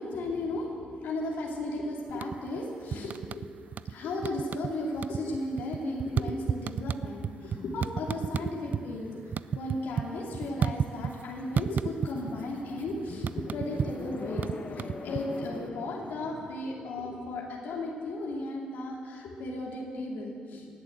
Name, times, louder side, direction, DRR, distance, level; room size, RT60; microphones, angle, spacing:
voice 1, 0.0-3.6 3.9-9.1 9.5-20.8, left 2 dB, 80° left, -2 dB, 2.6 m, -35 dB
sound 1, 2.1-2.6 2.9-3.9 4.2-4.7 5.0-8.8 9.1-11.2 11.6-12.4 12.7-15.6, right 7 dB, 55° right, 0.3 m, -32 dB
sound 2, 6.4-16.5, left 3 dB, 50° left, 1.1 m, -44 dB
18.5 x 7.2 x 7.9 m, 2.2 s
supercardioid pair, 60°, 3 cm